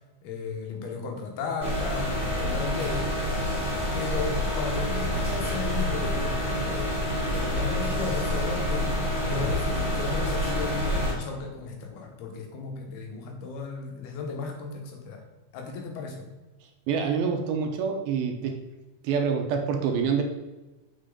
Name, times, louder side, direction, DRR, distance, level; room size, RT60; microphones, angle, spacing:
voice 1, 0.2-3.1 3.9-15.2 15.5-16.3, left 4 dB, 90° left, 2 dB, 3.1 m, -35 dB
sound 1, 1.6-11.1, left 1 dB, 10° right, 2.0 m, -27 dB
voice 2, 16.9-18.6 19.0-20.2, right 6 dB, 80° right, 3 dB, 2.5 m, -26 dB
6.8 x 6.6 x 3.8 m, 1.1 s
omnidirectional pair, 4.5 m